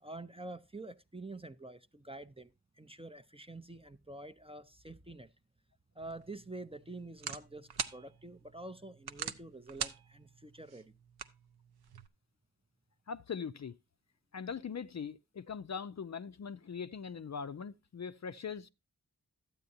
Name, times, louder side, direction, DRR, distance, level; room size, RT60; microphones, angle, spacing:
voice 1, 0.0-5.3 5.9-10.9, right 2 dB, 15° right, 0.5 m, -47 dB
sound 1, 6.0-12.1, right 6 dB, 70° right, 0.7 m, -44 dB
voice 2, 13.1-13.7 14.3-18.7, left 6 dB, 45° left, 0.4 m, -41 dB
12.0 x 8.6 x 2.7 m
wide cardioid pair, 45°, 40 cm